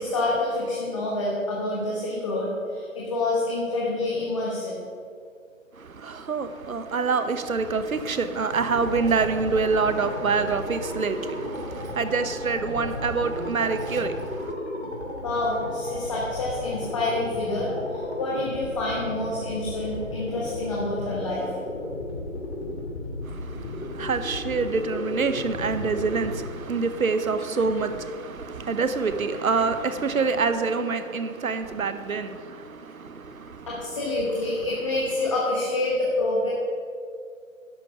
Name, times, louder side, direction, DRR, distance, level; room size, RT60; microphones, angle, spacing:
voice 1, 0.0-4.8 15.2-21.6 33.7-36.5, left 2 dB, 25° left, 1.3 m, -27 dB
voice 2, 5.8-14.5 23.3-33.7, right 4 dB, 85° right, 1.0 m, -26 dB
sound 1, 8.5-26.4, left 1 dB, 50° left, 2.9 m, -34 dB
11.0 x 6.6 x 5.8 m
hypercardioid pair, 165°, 41 cm